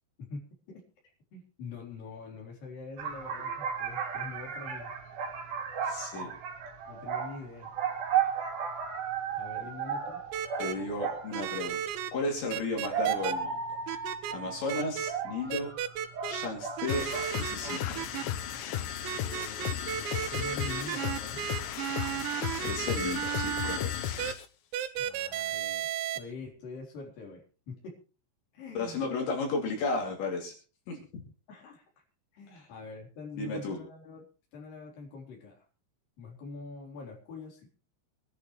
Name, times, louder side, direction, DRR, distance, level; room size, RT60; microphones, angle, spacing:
voice 1, 0.2-0.8 1.3-4.9 6.9-7.7 9.4-10.2 19.1-21.4 24.9-27.9 28.5-29.0 31.5-31.8 32.3-34.3 34.5-35.6 36.2-37.7, left 4 dB, 50° left, -1 dB, 5.2 m, -45 dB
sound 1, 3.0-11.4 12.5-17.3 17.6-18.0, right 7 dB, 60° right, 3.8 m, -34 dB
voice 2, 5.8-6.3 10.6-11.8 12.1-13.8 14.3-15.7 16.3-17.1 17.3-18.0 22.6-24.2 28.7-30.5 30.9-31.0 32.5-32.7 33.4-33.8, left 3 dB, 75° left, 0 dB, 5.0 m, -34 dB
sound 2, 10.3-10.7 11.3-12.1 12.5-13.3 13.9-14.3 14.7-15.1 15.5-16.5 16.8-18.2 19.1-23.8 24.2-24.3 24.7-26.2, right 10 dB, 80° right, 3.3 m, -34 dB
sound 3, 16.9-24.5, left 10 dB, 90° left, 1.9 m, -35 dB
25.0 x 11.0 x 3.2 m, 0.36 s
omnidirectional pair, 5.2 m